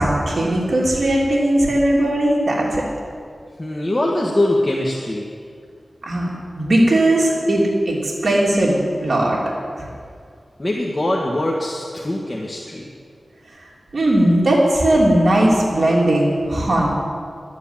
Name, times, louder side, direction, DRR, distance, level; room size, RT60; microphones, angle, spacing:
voice 1, 0.0-2.8 6.0-6.3 6.5-9.4 9.8-9.9 13.6-16.9, right 1 dB, 55° right, -4 dB, 3.0 m, -18 dB
voice 2, 3.6-5.2 10.6-12.9, left 1 dB, 25° left, -2 dB, 1.6 m, -22 dB
12.0 x 9.8 x 8.9 m, 2.2 s
wide cardioid pair, 70°, 0 cm